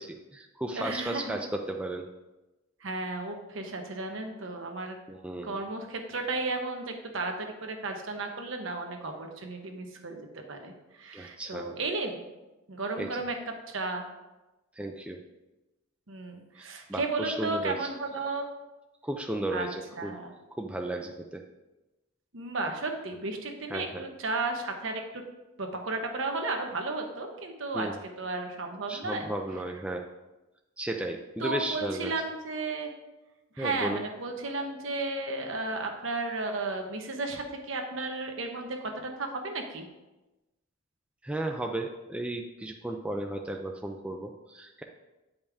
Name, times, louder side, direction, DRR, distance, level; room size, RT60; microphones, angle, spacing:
voice 1, 0.0-2.1 5.1-5.6 11.1-11.8 13.0-13.2 14.8-15.2 16.6-17.9 19.0-20.2 20.6-21.4 23.7-24.0 27.7-27.9 28.9-30.1 30.8-32.1 33.6-34.0 41.2-44.8, right 1 dB, 5° right, 2 dB, 0.3 m, -34 dB
voice 2, 0.7-1.4 2.8-5.0 5.4-12.2 12.7-13.3 13.7-14.1 16.1-18.5 19.5-19.7 19.9-20.3 22.3-25.0 25.6-27.9 28.2-29.3 31.4-32.9 33.6-39.9, right 3 dB, 65° right, 3 dB, 1.0 m, -34 dB
8.5 x 5.3 x 3.5 m, 1.0 s
head